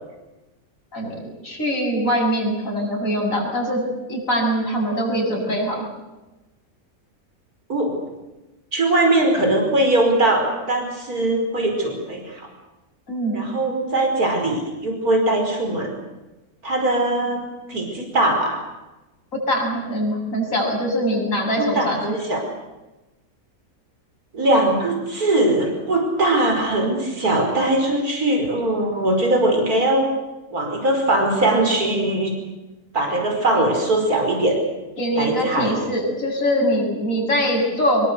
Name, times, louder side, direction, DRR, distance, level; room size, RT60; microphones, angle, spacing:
voice 1, 1.4-3.8 4.1-5.8 13.1-13.6 19.3-22.1 35.0-38.1, equal, 60° left, 0 dB, 8.1 m, -23 dB
voice 2, 8.7-12.5 13.3-15.9 16.6-17.4 17.7-18.6 21.6-22.4 24.3-30.1 30.5-32.3 32.9-34.6 35.1-35.8, right 1 dB, 85° right, 3 dB, 5.7 m, -20 dB
25.5 x 22.0 x 8.2 m, 1.1 s
omnidirectional pair, 1.5 m